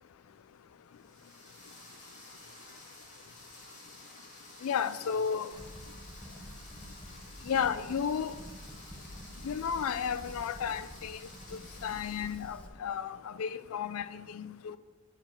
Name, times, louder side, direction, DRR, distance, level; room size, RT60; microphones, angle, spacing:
sound 1, 0.9-12.7, left 1 dB, 35° left, 2.1 m, -52 dB
voice 1, 4.6-5.5 7.5-8.3 9.4-11.2 11.5-14.8, left 7 dB, 75° left, 14 dB, 0.4 m, -33 dB
Fire, 5.5-12.7, equal, 5° left, 0.6 m, -49 dB
6.7 x 5.9 x 7.4 m, 1.3 s
head